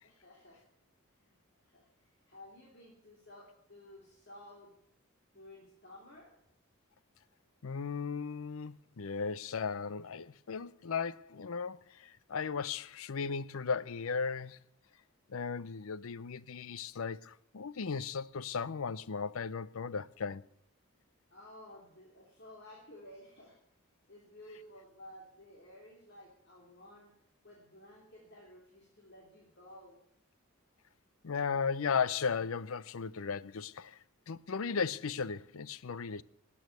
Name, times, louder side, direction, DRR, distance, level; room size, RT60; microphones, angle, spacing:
voice 1, 0.0-0.6 1.2-1.3 1.6-1.9 2.3-4.7 5.3-6.3 21.3-23.6 24.1-27.1 27.4-30.0, left 1 dB, 55° left, 3.0 m, -54 dB
voice 2, 7.6-14.6 15.3-20.4 31.2-34.0 34.3-36.2, left 5 dB, 80° left, 0.6 m, -36 dB
13.0 x 8.6 x 9.5 m
head